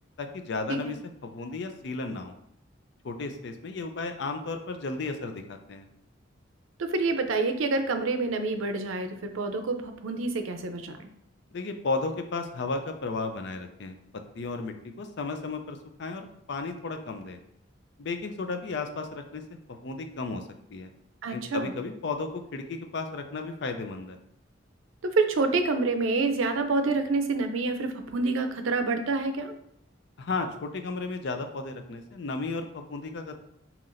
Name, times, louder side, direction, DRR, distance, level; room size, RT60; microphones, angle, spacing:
voice 1, 0.2-1.0 1.2-2.4 3.0-5.9 11.5-13.9 14.4-17.4 18.0-19.4 19.8-20.4 20.7-20.9 21.3-24.2 30.2-33.3, left 3 dB, 60° left, 6 dB, 0.5 m, -34 dB
voice 2, 6.8-11.0 21.2-21.7 25.0-29.5, right 3 dB, 90° right, 7 dB, 0.5 m, -27 dB
5.6 x 2.9 x 2.5 m, 0.74 s
head